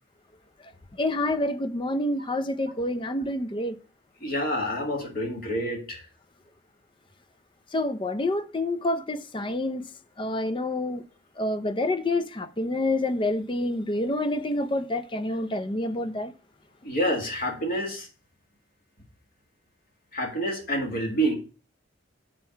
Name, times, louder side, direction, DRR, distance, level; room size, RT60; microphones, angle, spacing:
voice 1, 1.0-3.8 7.7-9.8 10.2-11.0 11.4-16.3, left 1 dB, 25° left, 0.5 m, -27 dB
voice 2, 4.2-6.0 16.8-18.1 20.1-21.3, right 1 dB, 45° left, 1.9 m, -28 dB
7.4 x 4.5 x 5.7 m
head